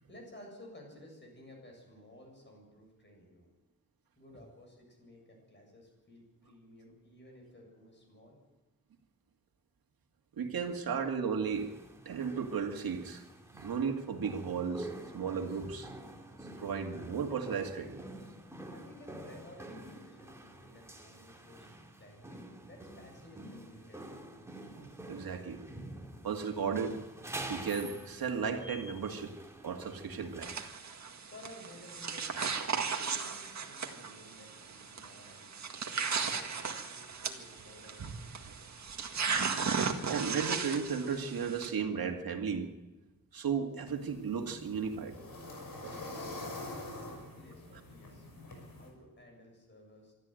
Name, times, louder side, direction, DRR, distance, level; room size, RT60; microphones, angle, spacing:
voice 1, 0.0-3.5 4.2-8.4 18.7-21.7 22.0-24.0 31.2-35.5 35.8-36.5 36.9-38.0 45.9-48.3 48.8-50.1, left 1 dB, 30° left, 1 dB, 7.6 m, -55 dB
voice 2, 10.4-11.7 12.1-13.2 13.5-15.9 16.6-18.0 24.7-25.6 26.2-27.0 27.5-29.3 29.6-30.5 33.0-33.1 39.6-42.7 43.3-45.2 45.8-46.0 47.7-47.8, right 6 dB, 85° right, 4 dB, 2.3 m, -35 dB
sound 1, 11.5-30.7, right 1 dB, 10° right, 2.7 m, -48 dB
sound 2, 30.4-41.7, right 5 dB, 50° right, 1.9 m, -36 dB
sound 3, 43.9-48.9, left 2 dB, 80° left, 6.1 m, -45 dB
25.0 x 13.5 x 9.1 m, 1.1 s
wide cardioid pair, 170°, 34 cm